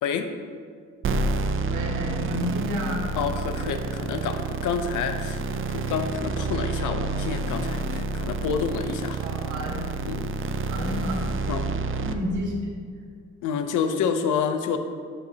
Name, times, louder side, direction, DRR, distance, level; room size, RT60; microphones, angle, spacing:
sound 1, 1.0-12.1, right 3 dB, 45° right, 0.5 m, -29 dB
voice 1, 1.7-3.0 3.5-3.9 9.2-9.9 10.7-11.3 12.0-12.7, equal, 80° right, -3 dB, 1.9 m, -30 dB
voice 2, 3.2-5.4 5.7-9.2 10.0-10.3 11.5-11.7 13.4-14.8, left 6 dB, 85° left, 8 dB, 0.7 m, -28 dB
11.5 x 5.8 x 2.8 m, 2.1 s
cardioid pair, 90°, 30 cm